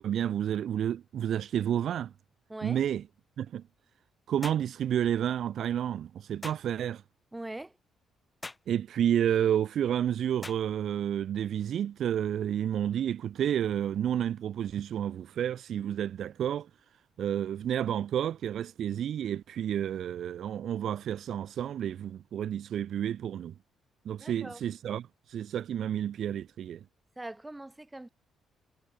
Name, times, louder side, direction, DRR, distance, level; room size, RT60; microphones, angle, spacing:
voice 1, 0.0-2.1 2.6-3.0 3.4-3.6 4.3-7.0 8.7-16.7 17.2-23.5 24.1-26.8, right 10 dB, 65° right, 0.4 m, -30 dB
voice 2, 2.5-2.8 7.3-7.7 24.2-24.6 27.2-28.1, right 1 dB, 10° right, 2.3 m, -41 dB
sound 1, 4.4-4.7 6.4-6.7 8.4-8.7 10.4-10.7, left 2 dB, 15° left, 0.9 m, -42 dB
cardioid pair, 90°, 0 cm